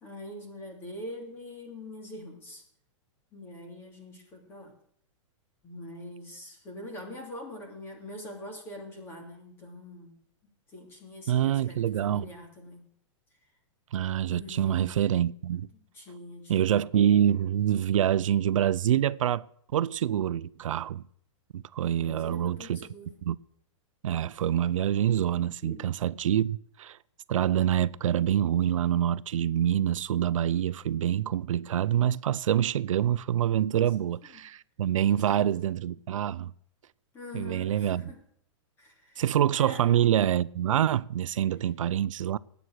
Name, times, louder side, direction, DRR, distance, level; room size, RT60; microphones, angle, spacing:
voice 1, 0.0-2.6 3.3-4.7 5.6-10.2 10.7-12.8 14.3-15.0 15.7-16.8 22.0-23.2 25.6-25.8 34.0-34.4 35.1-35.2 35.4-35.7 37.1-38.2 38.8-39.2 39.6-40.0, left 1 dB, 15° left, 2.8 m, -44 dB
voice 2, 11.3-12.3 13.9-15.7 16.5-19.5 19.7-21.0 21.5-22.9 23.2-23.4 24.0-27.0 27.3-36.5 37.3-38.1 39.2-42.4, right 10 dB, 90° right, 0.6 m, -26 dB
19.0 x 8.1 x 6.4 m
supercardioid pair, 175°, 16 cm